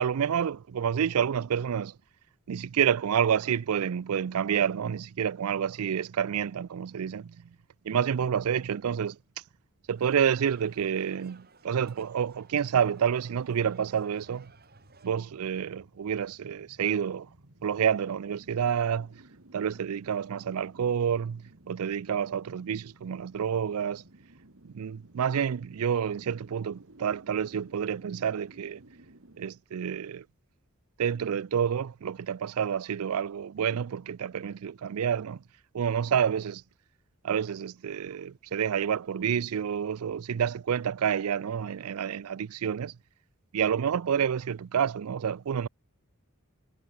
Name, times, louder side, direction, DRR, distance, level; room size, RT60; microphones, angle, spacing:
voice 1, 0.0-1.9 2.5-7.4 7.9-9.2 9.9-14.5 15.0-17.3 17.6-19.1 19.5-24.0 24.6-28.8 29.4-30.2 31.0-35.4 35.7-36.6 37.2-42.9 43.5-45.7, right 8 dB, 85° right, 0.4 m, -29 dB
sound 1, 10.0-15.1, right 4 dB, 45° right, 5.7 m, -57 dB
sound 2, 13.8-29.5, right 1 dB, 65° right, 1.9 m, -56 dB
head